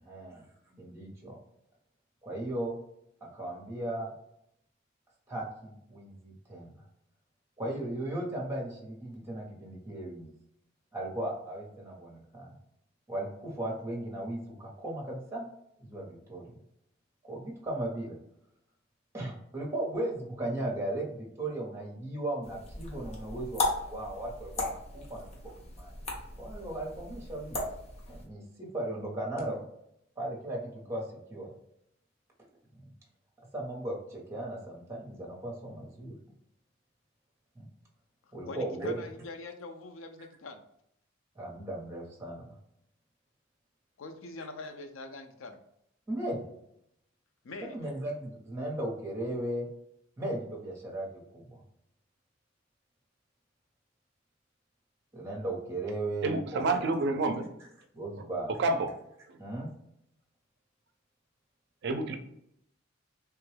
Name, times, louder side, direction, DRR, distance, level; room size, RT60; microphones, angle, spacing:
voice 1, 0.0-1.4 2.2-2.7 3.2-4.1 5.3-6.7 7.6-10.3 10.9-12.5 13.1-15.4 15.8-16.5 17.2-18.2 19.1-25.3 25.5-25.9 26.4-27.6 28.1-29.6 30.2-31.5 33.5-36.1 37.5-37.7 38.3-39.1 41.4-42.5 46.1-46.4 47.6-49.7 50.2-51.6 55.1-56.8 57.9-58.5 59.4-59.7, right 1 dB, 15° right, -2 dB, 0.8 m, -36 dB
sound 1, 22.4-28.3, left 2 dB, 35° left, 0.7 m, -37 dB
voice 2, 38.4-40.6 44.0-45.6 47.4-47.8, left 3 dB, 75° left, 7 dB, 0.5 m, -43 dB
voice 3, 56.2-57.5 58.2-58.3 58.6-58.9 61.8-62.2, right 2 dB, 60° right, 6 dB, 0.4 m, -28 dB
3.3 x 2.2 x 3.2 m, 0.76 s
head